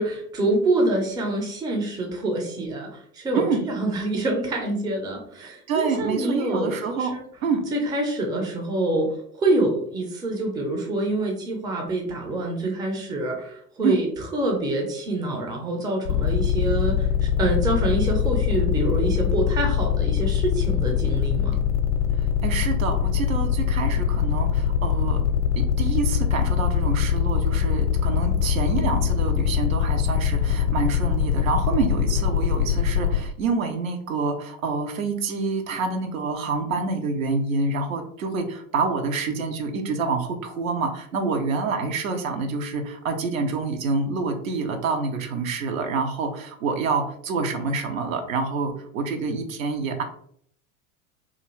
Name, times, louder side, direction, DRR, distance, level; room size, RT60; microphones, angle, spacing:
voice 1, 0.0-7.2 7.7-14.1 14.3-21.6, right 2 dB, 10° right, 1 dB, 0.5 m, -26 dB
voice 2, 5.4-7.2 7.4-7.6 13.8-14.0 22.2-25.2 25.6-50.0, right 4 dB, 65° right, 5 dB, 0.6 m, -27 dB
sound 1, 16.0-33.2, left 9 dB, 55° left, 0.6 m, -23 dB
2.5 x 2.4 x 3.0 m, 0.65 s
figure-of-eight pair, 80°, 43 cm